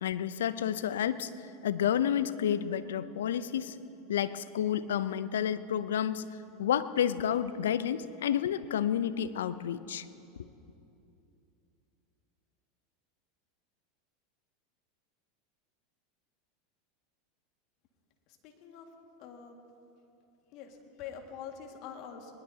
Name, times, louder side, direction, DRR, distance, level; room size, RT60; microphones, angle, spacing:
voice 1, 0.0-1.3 1.6-3.8 4.1-6.3 6.6-10.0, left 9 dB, 80° left, 14 dB, 0.5 m, -30 dB
voice 2, 18.4-18.9 19.2-19.6 20.5-22.3, left 7 dB, 55° left, 3 dB, 2.0 m, -45 dB
21.0 x 20.0 x 2.9 m, 2.8 s
hypercardioid pair, 90°, 0 cm